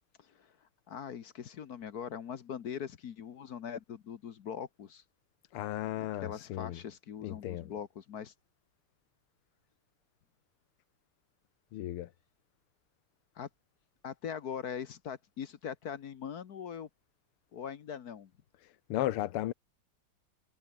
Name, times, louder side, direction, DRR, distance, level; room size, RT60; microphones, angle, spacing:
voice 1, 0.2-5.0 6.0-8.3 13.3-13.5 14.0-16.9 17.5-18.3, left 8 dB, 55° left, 1.3 m, -41 dB
voice 2, 5.5-6.8 7.2-7.7 11.7-12.1 18.9-19.5, left 14 dB, 80° left, 1.8 m, -35 dB
omnidirectional pair, 2.4 m